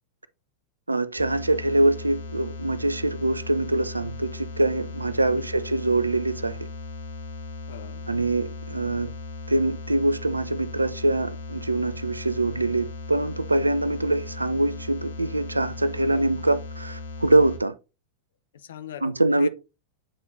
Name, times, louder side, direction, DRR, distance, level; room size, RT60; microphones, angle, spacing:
voice 1, 0.9-6.7 8.1-9.1 9.5-17.7 19.0-19.5, right 2 dB, 80° right, 0.4 m, -24 dB
sound 1, 1.2-17.6, left 3 dB, 80° left, 1.4 m, -37 dB
voice 2, 7.7-8.1 16.1-16.3 18.5-19.5, left 10 dB, 60° left, 0.6 m, -41 dB
8.9 x 4.0 x 2.6 m
figure-of-eight pair, 90°, 0 cm